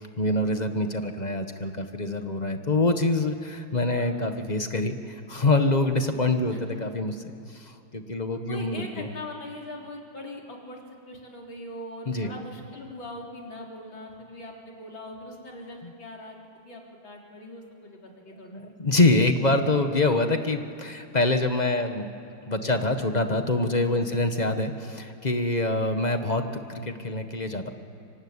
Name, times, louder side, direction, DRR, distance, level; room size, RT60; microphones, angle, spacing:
voice 1, 0.2-7.1 7.5-7.6 7.9-9.1 12.1-12.3 15.8-15.9 18.3-22.1 22.5-27.7, left 2 dB, 25° left, 7 dB, 1.2 m, -25 dB
voice 2, 6.5-6.9 8.5-18.6 22.7-22.8 24.1-24.2, left 1 dB, 65° left, -1 dB, 4.5 m, -41 dB
25.0 x 24.5 x 9.7 m, 2.6 s
omnidirectional pair, 2.3 m